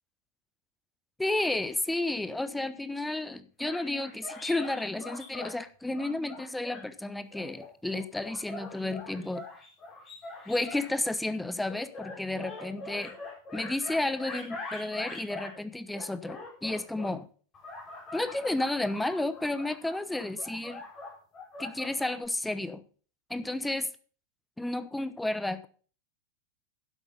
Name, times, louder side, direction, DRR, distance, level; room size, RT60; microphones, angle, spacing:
voice 1, 1.2-9.4 10.5-13.1 13.5-17.3 18.1-20.8 21.6-22.8 23.3-23.9 24.6-25.7, left 2 dB, 5° left, 13 dB, 0.8 m, -32 dB
sound 1, 3.6-5.5 5.9-6.8 7.3-11.0 11.7-15.6 15.9-17.1 17.5-22.3, left 3 dB, 25° left, 4.5 m, -43 dB
11.0 x 8.0 x 5.3 m, 0.41 s
figure-of-eight pair, 90°, 0 cm